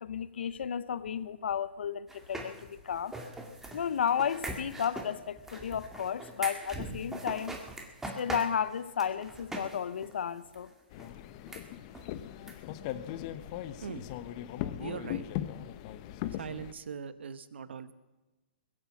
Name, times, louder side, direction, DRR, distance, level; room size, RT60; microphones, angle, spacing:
voice 1, 0.0-3.1 3.7-7.5 8.2-10.7, left 8 dB, 75° left, 16 dB, 0.8 m, -33 dB
sound 1, 2.1-9.8 10.0-10.1 10.5-10.6 11.0-11.1 11.5-11.6 11.9-12.0 12.5-12.6 12.8-12.9, right 1 dB, 5° right, 2.2 m, -41 dB
sound 2, 10.9-16.7, left 12 dB, 40° left, 1.0 m, -39 dB
voice 2, 14.8-15.2 16.4-17.9, right 6 dB, 75° right, 14 dB, 1.1 m, -40 dB
22.0 x 8.6 x 7.3 m, 1.2 s
hypercardioid pair, 140°, 6 cm